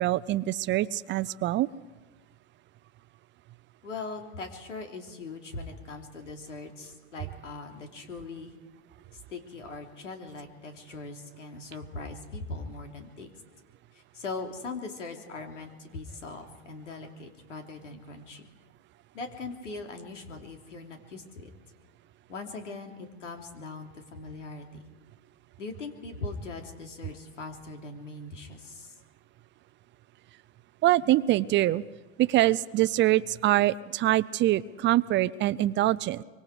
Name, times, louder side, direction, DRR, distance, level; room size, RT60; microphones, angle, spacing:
voice 1, 0.0-1.7 30.8-31.8 32.2-36.2, right 15 dB, 30° right, 17 dB, 0.6 m, -24 dB
voice 2, 3.8-8.6 9.3-13.3 13.9-18.4 19.1-21.5 22.3-24.9 25.6-29.0, left 3 dB, 90° left, 4 dB, 3.4 m, -40 dB
24.5 x 24.5 x 5.0 m, 1.4 s
hypercardioid pair, 100°, 36 cm